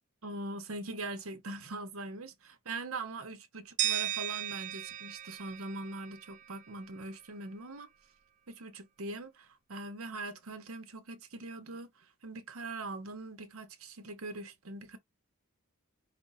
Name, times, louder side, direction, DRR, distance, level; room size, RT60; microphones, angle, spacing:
voice 1, 0.2-7.9 8.5-15.0, right 2 dB, 85° right, 1.0 m, -42 dB
sound 1, 3.8-6.7, right 13 dB, 35° right, 0.3 m, -36 dB
5.1 x 2.3 x 3.8 m
head